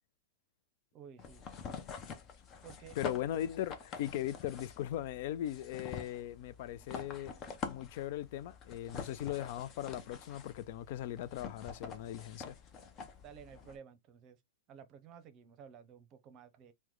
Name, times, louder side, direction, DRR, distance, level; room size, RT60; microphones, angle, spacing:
voice 1, 0.9-1.4 2.6-3.0 13.2-14.4 14.7-16.7, right 8 dB, 40° right, 0.7 m, -53 dB
sound 1, 1.2-13.8, left 5 dB, 35° left, 0.7 m, -46 dB
voice 2, 3.0-7.3 7.6-12.6, left 12 dB, 60° left, 0.3 m, -39 dB
2.9 x 2.2 x 3.7 m
hypercardioid pair, 110°, 0 cm